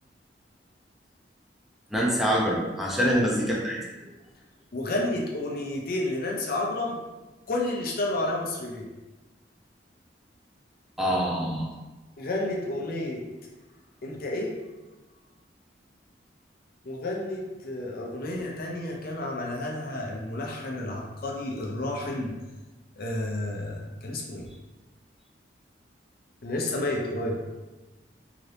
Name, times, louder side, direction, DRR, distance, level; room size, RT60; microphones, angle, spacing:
voice 1, 1.9-3.8 11.0-11.7, equal, ahead, -4 dB, 0.5 m, -25 dB
voice 2, 4.7-7.0 7.5-8.9 12.2-13.2 14.0-14.5 16.8-22.3 23.0-24.5 26.4-27.4, left 1 dB, 55° left, -1 dB, 0.5 m, -31 dB
2.8 x 2.6 x 3.2 m, 1.1 s
head